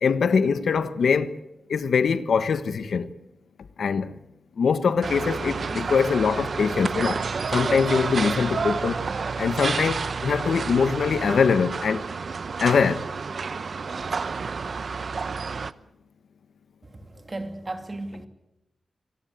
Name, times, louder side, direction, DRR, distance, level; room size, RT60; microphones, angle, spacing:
voice 1, 0.0-1.4 1.7-3.1 3.8-4.1 4.6-7.2 7.5-9.0 9.4-12.0 12.6-13.0, left 5 dB, 85° left, 1.3 m, -23 dB
sound 1, 5.0-15.7, right 5 dB, 55° right, 0.9 m, -30 dB
voice 2, 16.8-18.3, right 2 dB, 30° right, 2.7 m, -35 dB
27.0 x 18.0 x 8.3 m
wide cardioid pair, 130°, 0 cm